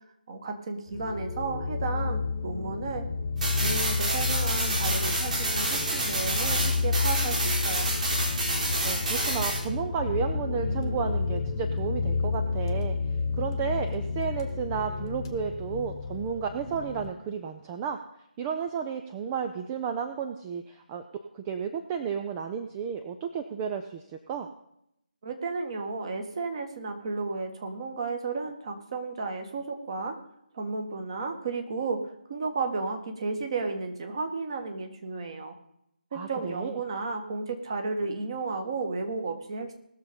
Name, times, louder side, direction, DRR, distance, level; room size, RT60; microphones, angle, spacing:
voice 1, 0.3-3.1 3.6-7.9 25.2-30.2 30.5-35.5 36.1-39.7, right 4 dB, 30° right, 5 dB, 1.7 m, -33 dB
sound 1, 0.9-17.1, left 4 dB, 20° left, 1.2 m, -30 dB
sound 2, 3.4-9.6, right 2 dB, 45° right, 4.8 m, -29 dB
voice 2, 8.8-13.0 13.4-18.0 18.4-21.0 21.3-24.5 36.1-36.8, right 7 dB, 10° right, 6 dB, 0.4 m, -32 dB
19.0 x 6.8 x 5.2 m, 0.78 s
figure-of-eight pair, 155°, 5 cm